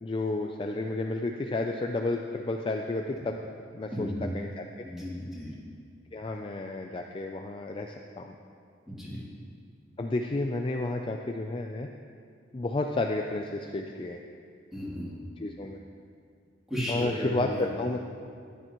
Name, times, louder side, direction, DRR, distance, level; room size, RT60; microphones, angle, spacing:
voice 1, 0.0-3.4 3.7-4.9 6.1-8.3 10.0-11.9 12.5-14.2 15.4-15.8 16.9-18.1, left 2 dB, 30° left, 3 dB, 0.4 m, -31 dB
voice 2, 4.8-5.5 8.9-9.2 14.7-15.1 16.7-17.7, equal, ahead, -9 dB, 2.9 m, -34 dB
13.5 x 10.0 x 3.1 m, 2.2 s
head